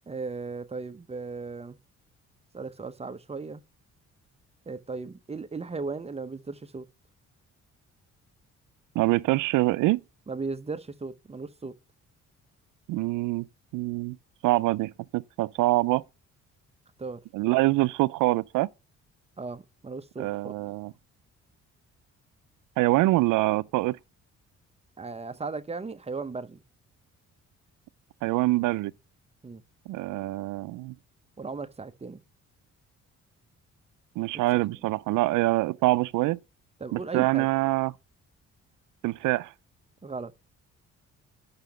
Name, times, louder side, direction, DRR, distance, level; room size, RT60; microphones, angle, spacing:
voice 1, 0.1-1.8 2.5-3.6 4.7-6.9 10.3-11.8 17.0-17.2 19.4-20.5 25.0-26.6 29.4-29.6 31.4-32.2 36.8-37.5 40.0-40.3, right 4 dB, 20° right, 0.8 m, -36 dB
voice 2, 9.0-10.0 12.9-13.5 13.7-14.2 14.4-16.0 17.3-18.7 20.2-20.9 22.8-24.0 28.2-28.9 29.9-30.9 34.2-36.4 36.9-37.9 39.0-39.5, right 19 dB, 85° right, 0.5 m, -25 dB
5.9 x 5.7 x 6.5 m
cardioid pair, 90°, 30 cm